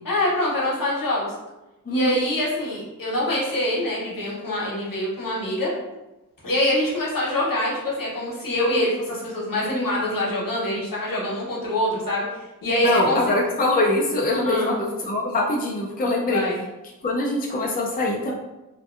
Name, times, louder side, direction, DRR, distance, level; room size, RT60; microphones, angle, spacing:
voice 1, 0.0-1.3 1.9-5.7 6.4-13.5 14.4-14.8 16.3-16.6, left 1 dB, 70° left, -5 dB, 0.9 m, -25 dB
voice 2, 12.8-16.4 17.0-18.3, left 2 dB, 25° left, -2 dB, 0.4 m, -23 dB
2.7 x 2.2 x 2.4 m, 1.0 s
wide cardioid pair, 60°, 35 cm